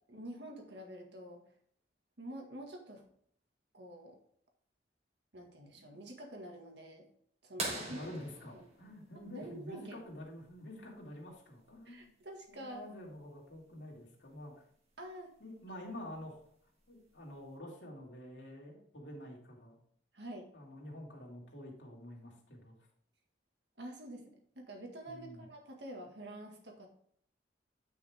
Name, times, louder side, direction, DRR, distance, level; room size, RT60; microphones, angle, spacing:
voice 1, 0.1-1.4 2.2-3.0 3.7-4.2 5.3-7.0 7.4-8.1 8.5-8.6 9.2-10.0 11.9-12.9 15.0-15.3 20.1-20.5 23.8-26.9, right 1 dB, 70° right, 2 dB, 1.8 m, -47 dB
voice 2, 7.6-12.1 12.5-14.6 15.4-16.4 16.9-19.8 20.5-22.8 25.1-25.4, left 1 dB, 90° left, -1 dB, 2.5 m, -48 dB
sound 1, 7.6-10.0 12.0-12.1 14.3-14.4 16.1-16.4 17.2-17.3, right 2 dB, 35° right, 1.7 m, -42 dB
9.5 x 5.6 x 3.5 m, 0.63 s
head